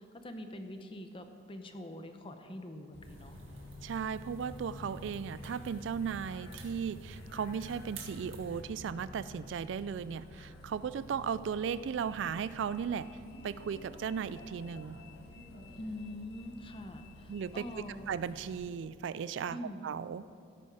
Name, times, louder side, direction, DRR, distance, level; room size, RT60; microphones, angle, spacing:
voice 1, 0.0-3.4 15.7-18.1 19.5-19.9, left 1 dB, 25° left, 7 dB, 0.8 m, -44 dB
Bus, 2.9-18.6, left 2 dB, 55° left, 1.9 m, -51 dB
sound 1, 3.0-8.6, right 2 dB, 90° right, 1.8 m, -50 dB
voice 2, 3.8-13.1 13.4-15.0 17.3-19.6 19.8-20.3, right 7 dB, 65° right, 16 dB, 0.3 m, -36 dB
16.0 x 8.6 x 4.8 m, 2.4 s
head